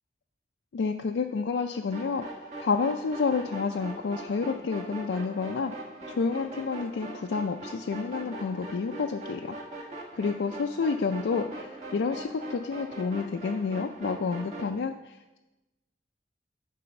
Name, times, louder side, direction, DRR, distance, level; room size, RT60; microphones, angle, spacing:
voice 1, 0.7-2.2 2.6-9.6 10.1-15.4, left 5 dB, 90° left, 4 dB, 0.4 m, -29 dB
sound 1, 1.9-14.7, right 1 dB, 40° right, 1.3 m, -41 dB
9.2 x 3.4 x 6.8 m, 1.0 s
head